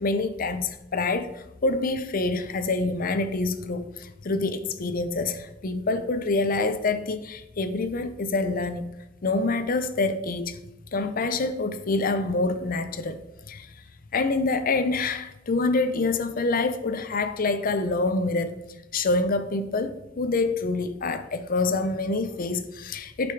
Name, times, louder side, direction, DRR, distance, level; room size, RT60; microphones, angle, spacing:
voice 1, 0.0-8.9 9.2-10.6 10.9-13.7 14.1-18.5 18.9-23.3, left 3 dB, 45° left, 0.6 m, -26 dB
8.1 x 5.2 x 4.6 m
head